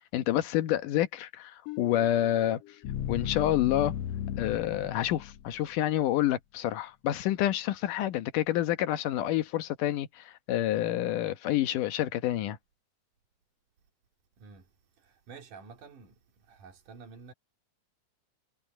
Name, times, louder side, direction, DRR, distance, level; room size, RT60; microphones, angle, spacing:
voice 1, 0.1-2.6 3.1-3.9 4.4-12.6, left 12 dB, 90° left, 2.7 m, -28 dB
sound 1, 1.7-5.7, left 10 dB, 65° left, 1.8 m, -36 dB
voice 2, 15.0-16.2 16.5-17.3, right 5 dB, 80° right, 4.1 m, -49 dB
omnidirectional pair, 3.6 m